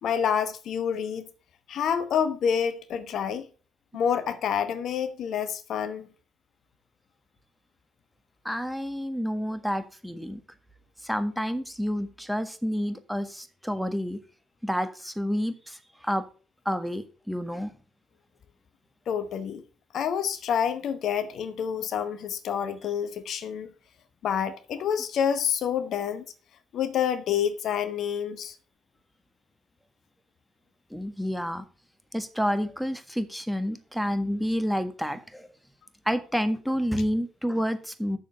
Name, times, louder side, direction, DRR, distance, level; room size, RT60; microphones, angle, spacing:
voice 1, 0.0-1.3 1.7-3.5 3.9-6.1 19.1-19.6 19.9-23.7 24.2-26.2 26.7-28.5, left 8 dB, 60° left, 0.9 m, -28 dB
voice 2, 8.4-10.4 11.0-14.2 14.6-16.2 16.6-17.7 30.9-31.6 32.1-35.5 36.0-38.2, equal, ahead, 1.5 m, -29 dB
6.9 x 6.5 x 6.6 m
hypercardioid pair, 45°, 0 cm